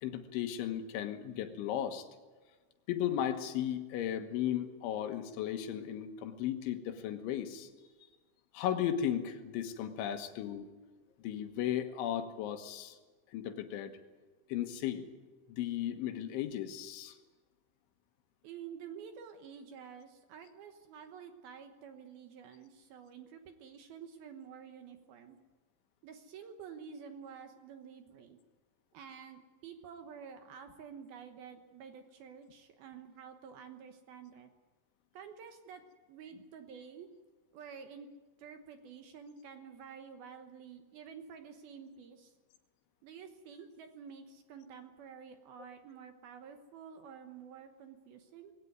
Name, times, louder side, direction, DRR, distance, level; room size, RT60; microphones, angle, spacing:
voice 1, 0.0-2.0 2.9-7.7 8.5-10.7 11.2-13.0 13.3-13.9 14.5-15.0 15.5-17.2, left 10 dB, 80° left, 7 dB, 3.7 m, -35 dB
voice 2, 18.4-25.4 26.0-28.4 28.9-34.5 35.1-35.8 36.1-37.1 37.5-38.1 38.4-42.3 43.0-48.5, right 7 dB, 70° right, 6 dB, 2.6 m, -50 dB
20.5 x 17.0 x 9.5 m, 1.3 s
omnidirectional pair, 5.4 m